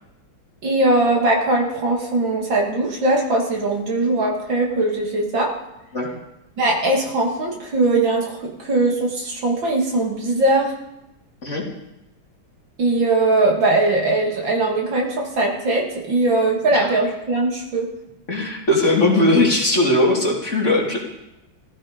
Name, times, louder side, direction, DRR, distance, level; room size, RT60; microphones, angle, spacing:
voice 1, 0.6-5.5 6.6-10.7 12.8-17.9, right 2 dB, 65° right, 0 dB, 3.1 m, -20 dB
voice 2, 18.3-21.0, left 2 dB, 35° left, -2 dB, 3.3 m, -18 dB
17.5 x 15.0 x 5.2 m, 0.91 s
omnidirectional pair, 2.3 m